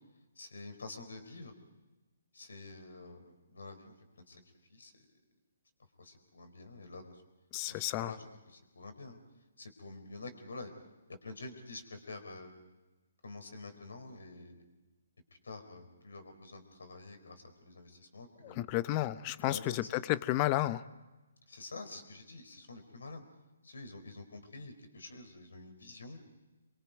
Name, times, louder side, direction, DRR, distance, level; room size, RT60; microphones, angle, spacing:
voice 1, 0.3-1.5 2.3-3.9 4.3-4.4 4.7-5.1 6.0-7.2 7.7-9.2 9.6-10.7 11.2-12.5 13.2-14.6 15.4-18.6 19.4-19.8 21.5-23.2 23.6-26.2, left 3 dB, 80° left, 6 dB, 4.7 m, -48 dB
voice 2, 7.5-8.1 18.4-20.8, left 16 dB, 30° left, 15 dB, 0.8 m, -32 dB
28.0 x 23.5 x 5.3 m, 1.1 s
hypercardioid pair, 145°, 0 cm